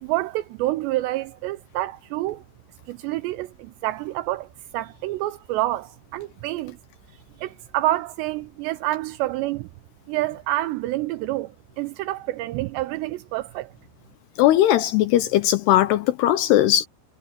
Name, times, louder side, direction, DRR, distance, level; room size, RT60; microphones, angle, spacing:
voice 1, 0.0-2.4 2.9-6.8 7.4-9.7 10.1-13.7, right 16 dB, 85° right, 2.5 m, -28 dB
voice 2, 14.4-16.9, left 13 dB, 80° left, 2.4 m, -18 dB
omnidirectional pair, 5.6 m